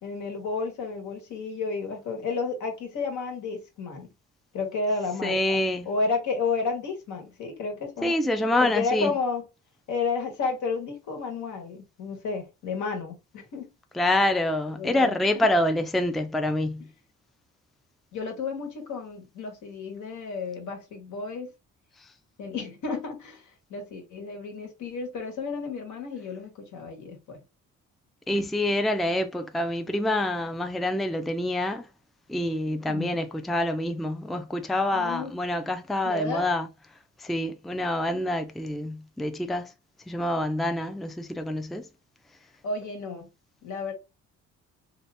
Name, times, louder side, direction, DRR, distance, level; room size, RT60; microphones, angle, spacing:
voice 1, 0.0-4.1 4.5-8.1 8.6-9.4 9.9-13.7 14.8-15.5 18.1-21.5 22.4-27.4 32.9-33.2 34.9-35.3 36.0-36.5 42.6-43.3 43.6-43.9, left 4 dB, 75° left, 1.3 m, -32 dB
voice 2, 5.2-5.8 8.0-9.1 13.9-16.9 28.3-31.9 32.3-36.7 37.2-39.7 40.1-41.8, left 1 dB, ahead, 0.4 m, -26 dB
2.7 x 2.5 x 3.2 m
cardioid pair, 90°, 30 cm